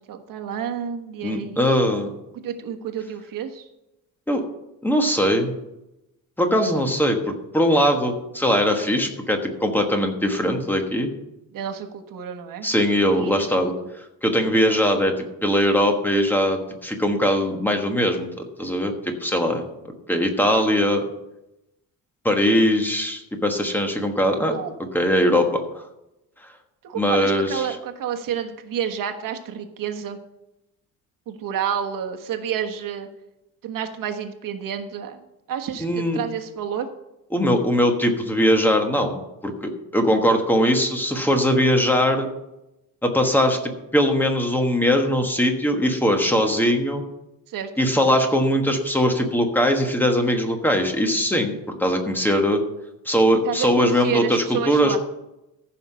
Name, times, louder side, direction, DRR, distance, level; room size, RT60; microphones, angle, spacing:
voice 1, 0.0-2.0 2.3-3.6 11.5-12.7 13.0-13.9 24.5-24.7 26.8-30.2 31.3-33.1 33.6-36.9 47.5-47.9 53.4-55.0, right 8 dB, 65° right, 5 dB, 1.3 m, -30 dB
voice 2, 1.2-2.1 4.3-4.4 4.8-5.5 6.4-11.1 12.6-13.7 14.2-15.1 15.4-18.3 18.6-19.6 20.1-21.0 22.2-24.6 24.9-25.5 26.9-27.7 35.8-36.2 37.3-42.3 43.0-43.6 43.9-47.0 47.8-52.6 53.0-55.0, equal, 5° left, 4 dB, 1.3 m, -20 dB
14.5 x 5.8 x 5.6 m, 0.91 s
cardioid pair, 150°, 36 cm